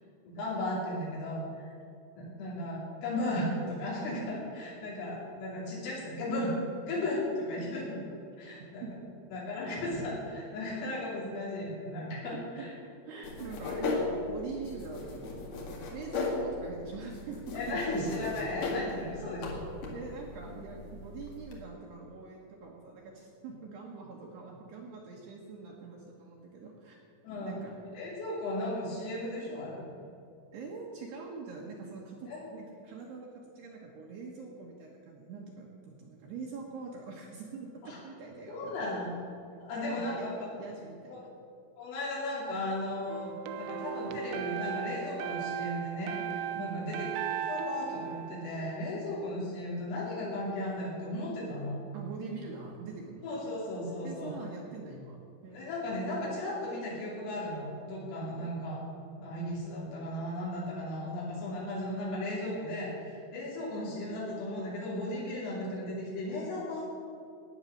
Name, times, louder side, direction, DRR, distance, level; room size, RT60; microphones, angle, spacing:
voice 1, 0.3-1.8 2.2-6.5 6.8-8.0 8.4-8.9 9.3-12.7 13.2-13.3 17.5-19.6 20.5-20.6 27.2-27.6 27.9-29.9 32.3-32.4 37.8-38.0 38.5-39.2 39.6-40.5 41.1-41.2 41.8-43.3 43.6-47.0 47.3-51.8 53.2-54.4 55.5-58.8 59.2-66.8, left 1 dB, 75° left, -6 dB, 5.5 m, -35 dB
voice 2, 13.0-17.8 19.9-27.0 27.4-27.8 30.5-38.8 39.8-40.3 40.6-41.3 46.5-46.9 51.9-53.5 54.0-55.2 55.4-55.7, right 4 dB, 65° right, -2 dB, 2.9 m, -44 dB
sound 1, 13.2-21.6, left 3 dB, 55° left, 2.7 m, -37 dB
sound 2, 43.1-49.1, right 8 dB, 85° right, 3.3 m, -37 dB
16.0 x 9.7 x 6.4 m, 2.5 s
omnidirectional pair, 6.0 m